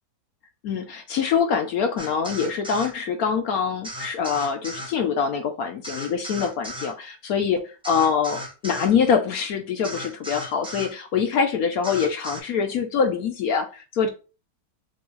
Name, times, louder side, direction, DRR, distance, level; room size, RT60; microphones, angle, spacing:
voice 1, 0.6-14.1, left 6 dB, 70° left, 5 dB, 0.9 m, -24 dB
sound 1, 2.0-2.9 3.8-4.9 5.8-6.9 7.8-8.9 9.8-10.9 11.8-12.4, equal, 5° right, 0.5 m, -35 dB
6.0 x 2.3 x 3.1 m, 0.33 s
omnidirectional pair, 2.0 m